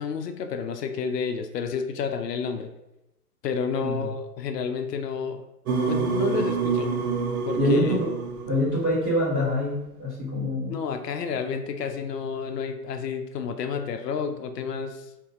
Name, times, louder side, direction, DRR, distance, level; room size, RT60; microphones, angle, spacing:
voice 1, 0.0-2.7 3.4-5.4 5.9-6.9 7.5-7.9 10.7-15.1, left 6 dB, 80° left, 6 dB, 0.6 m, -30 dB
sound 1, 5.7-8.9, right 5 dB, 65° right, 0.6 m, -27 dB
voice 2, 7.6-8.1 8.5-10.9, left 1 dB, 25° right, -10 dB, 1.3 m, -25 dB
2.7 x 2.6 x 3.5 m, 0.90 s
hypercardioid pair, 145°, 48 cm